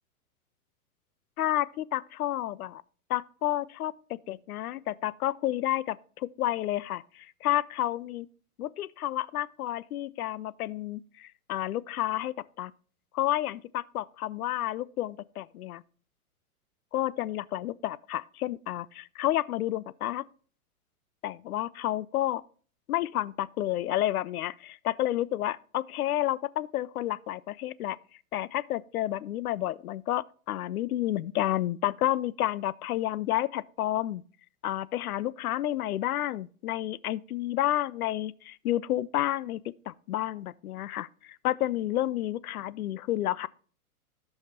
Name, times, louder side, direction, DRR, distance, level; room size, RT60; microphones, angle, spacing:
voice 1, 1.4-2.8 3.1-6.0 6.4-8.3 8.6-12.7 13.1-15.8 16.9-20.2 21.2-22.4 22.9-28.0 28.3-34.2 34.6-43.5, left 13 dB, 75° left, 0.6 m, -30 dB
15.5 x 5.7 x 2.8 m
hypercardioid pair, 135°, 44 cm